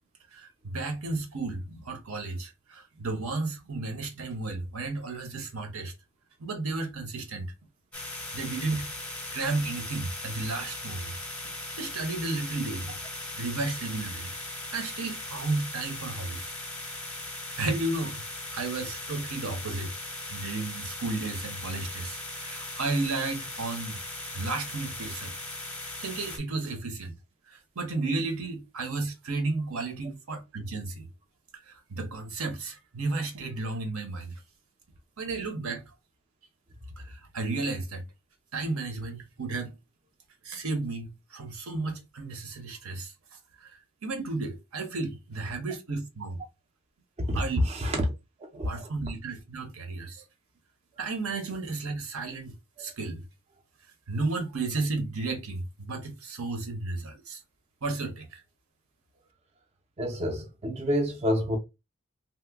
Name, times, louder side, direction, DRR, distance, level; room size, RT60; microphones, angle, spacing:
voice 1, 0.3-5.9 6.4-7.5 8.3-11.1 11.8-12.9 13.3-14.3 14.7-16.5 17.6-18.2 18.5-20.0 20.3-24.0 24.3-25.3 26.0-27.1 27.5-31.1 31.5-34.3 35.2-35.8 37.0-38.0 38.5-39.7 40.4-43.1 43.6-43.7 44.0-46.4 47.3-47.6 47.9-48.0 48.6-50.2 51.0-52.5 52.8-53.2 54.1-57.4 57.8-58.4, right 3 dB, 70° right, 0.8 m, -33 dB
sound 1, 7.9-26.4, left 2 dB, 5° left, 0.7 m, -38 dB
voice 2, 47.2-48.0 48.5-48.9 52.8-52.9 60.0-61.6, equal, 30° right, 0.4 m, -28 dB
2.9 x 2.1 x 3.3 m
head